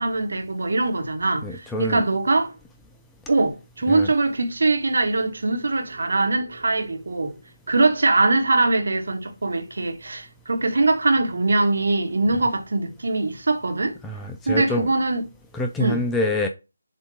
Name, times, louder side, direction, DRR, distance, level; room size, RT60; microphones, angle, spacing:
voice 1, 0.0-2.5 3.3-7.3 7.7-14.0 14.5-15.2 15.8-16.0, right 2 dB, 60° right, 1.4 m, -22 dB
voice 2, 1.4-2.0 3.9-4.1 14.0-14.9 15.5-16.5, left 1 dB, 5° left, 0.4 m, -26 dB
7.0 x 2.8 x 4.9 m
figure-of-eight pair, 155°, 0 cm